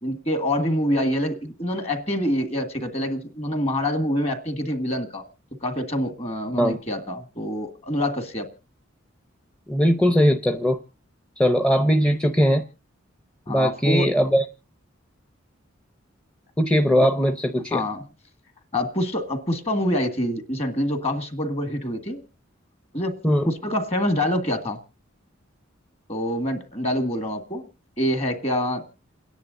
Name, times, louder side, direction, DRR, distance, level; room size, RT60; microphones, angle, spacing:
voice 1, 0.0-5.2 5.6-8.5 13.5-14.1 17.0-17.1 17.7-18.1 18.7-22.2 22.9-23.1 23.5-24.8 26.1-27.6 28.0-28.8, left 1 dB, 30° left, 1.8 m, -26 dB
voice 2, 9.7-10.8 11.4-12.6 13.5-14.4 16.6-17.8 23.2-23.5, equal, 5° left, 0.7 m, -20 dB
29.0 x 10.5 x 2.6 m
head